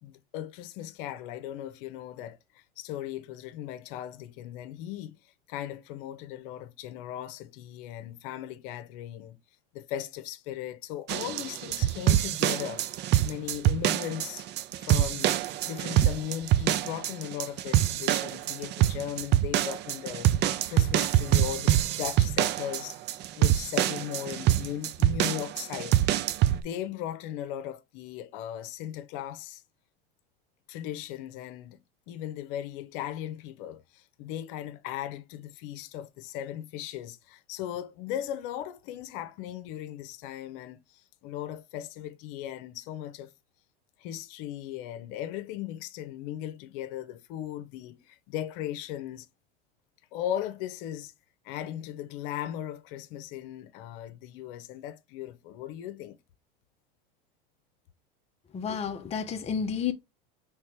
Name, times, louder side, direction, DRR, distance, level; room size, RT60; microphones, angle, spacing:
voice 1, 0.0-9.4 9.7-14.5 14.8-29.6 30.7-31.8 32.1-43.3 44.0-49.3 50.1-51.1 51.4-56.2, left 11 dB, 65° left, 0.8 m, -38 dB
sound 1, 11.1-26.6, right 12 dB, 40° right, 0.4 m, -25 dB
voice 2, 58.5-59.9, left 7 dB, 20° left, 0.7 m, -31 dB
4.4 x 3.5 x 3.2 m
supercardioid pair, 110°, 29 cm